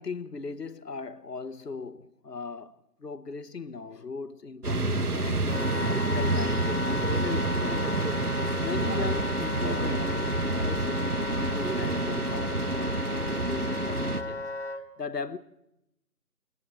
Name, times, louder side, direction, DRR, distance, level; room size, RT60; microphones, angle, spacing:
voice 1, 0.0-8.0 8.6-14.4 14.7-15.4, left 4 dB, 90° left, 1.2 m, -38 dB
sound 1, 4.6-14.2, right 3 dB, 70° right, 1.9 m, -28 dB
Wind instrument woodwind instrument, 5.5-14.8, left 5 dB, 45° left, 1.3 m, -35 dB
29.5 x 21.5 x 4.4 m
figure-of-eight pair, 165°, 47 cm